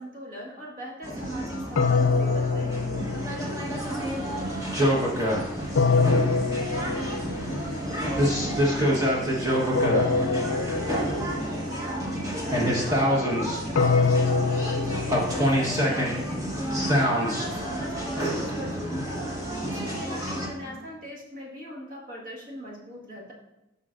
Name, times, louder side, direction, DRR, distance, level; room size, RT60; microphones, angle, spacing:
voice 1, 0.0-2.8 11.6-16.4 16.8-19.2 19.6-23.3, equal, 45° right, -3 dB, 1.6 m, -40 dB
sound 1, 1.0-20.5, equal, 15° right, 1.2 m, -27 dB
sound 2, 1.8-3.8 5.8-7.6 9.8-11.6 13.8-16.0, left 4 dB, 85° left, 0.4 m, -25 dB
sound 3, 3.8-8.9, left 1 dB, 20° left, 2.0 m, -46 dB
voice 2, 3.9-7.3 7.7-11.0 20.6-20.9, right 1 dB, 5° left, -3 dB, 0.8 m, -45 dB
11.5 x 5.5 x 2.5 m, 0.95 s
head